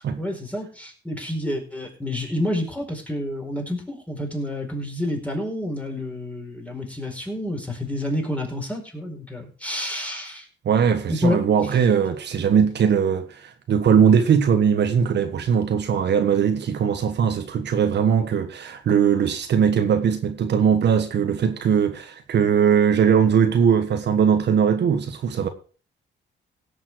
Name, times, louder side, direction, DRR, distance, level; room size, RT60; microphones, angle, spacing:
voice 1, 0.0-10.5 11.1-11.4, left 1 dB, 5° left, 4.8 m, -29 dB
voice 2, 10.6-25.5, right 7 dB, 60° right, 1.5 m, -20 dB
17.0 x 7.3 x 4.8 m
cardioid pair, 90°, 20 cm